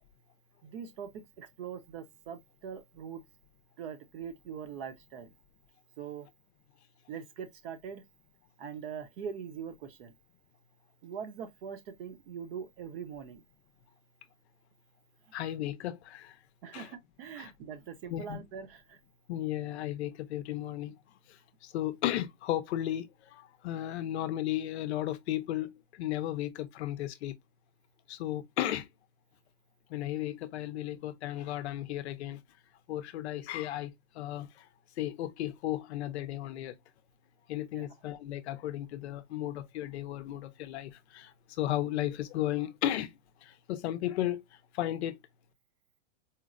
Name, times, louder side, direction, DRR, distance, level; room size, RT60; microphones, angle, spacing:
voice 1, 0.6-3.2 3.8-5.3 6.0-6.3 7.1-8.0 8.6-10.1 11.0-13.4 16.6-19.0 37.7-37.9, right 7 dB, 45° right, 0.7 m, -42 dB
voice 2, 15.3-16.4 16.7-16.9 17.4-17.5 18.1-18.4 19.3-21.0 21.6-27.4 28.1-28.9 29.9-32.4 32.9-34.7 35.0-36.7 37.5-41.3 41.6-44.4 44.7-45.2, left 13 dB, 60° left, 0.5 m, -34 dB
4.4 x 2.0 x 2.4 m
supercardioid pair, 155°, 38 cm